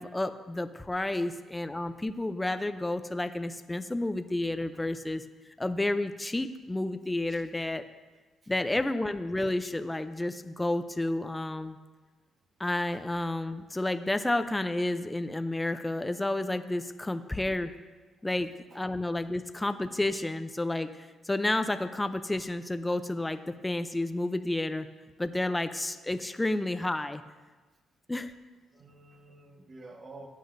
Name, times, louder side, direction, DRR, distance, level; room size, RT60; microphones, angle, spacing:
voice 1, 0.0-5.2 5.6-7.8 8.5-11.8 12.6-17.7 18.2-18.5 18.7-24.9 25.2-27.2 28.1-28.3, left 2 dB, 15° left, 9 dB, 0.5 m, -31 dB
voice 2, 28.7-30.3, right 2 dB, 40° right, 3 dB, 1.3 m, -50 dB
15.5 x 8.3 x 2.6 m, 1.3 s
cardioid pair, 90°, 0 cm